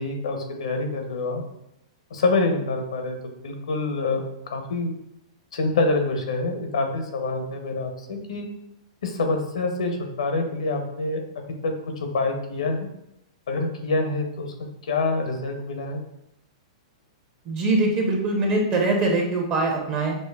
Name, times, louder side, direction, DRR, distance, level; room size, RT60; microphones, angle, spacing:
voice 1, 0.0-1.4 2.1-4.2 4.5-4.9 5.5-8.5 9.0-11.2 11.6-12.9 13.5-14.5 14.8-16.0, left 3 dB, 85° left, 4 dB, 0.6 m, -26 dB
voice 2, 17.5-20.2, right 2 dB, 35° right, 0 dB, 0.7 m, -22 dB
5.1 x 2.0 x 2.3 m, 0.81 s
hypercardioid pair, 125°, 3 cm